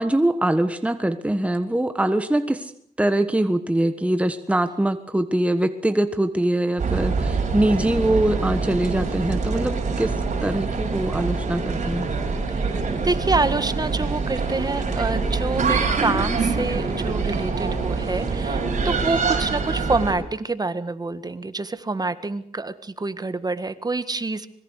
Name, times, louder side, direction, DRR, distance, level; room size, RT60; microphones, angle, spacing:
voice 1, 0.0-2.7 3.0-10.1 10.4-12.1, right 1 dB, 10° right, 9 dB, 1.4 m, -23 dB
sound 1, 6.8-20.1, right 4 dB, 50° right, 6.7 m, -25 dB
voice 2, 12.5-24.5, right 3 dB, 25° right, 12 dB, 1.7 m, -27 dB
26.0 x 21.5 x 6.6 m, 0.65 s
cardioid pair, 80°, 15 cm